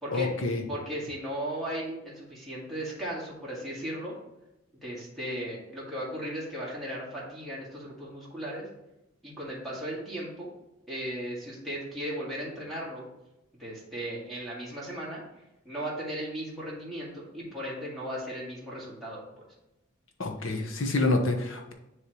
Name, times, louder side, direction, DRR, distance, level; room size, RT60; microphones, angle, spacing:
voice 1, 0.1-0.6 20.2-21.7, left 2 dB, 80° left, 3 dB, 1.0 m, -27 dB
voice 2, 0.7-4.1 4.8-8.7 9.2-10.5 10.9-13.1 13.6-15.2 15.7-19.2, right 1 dB, ahead, -6 dB, 1.9 m, -36 dB
9.9 x 3.3 x 3.0 m, 0.93 s
head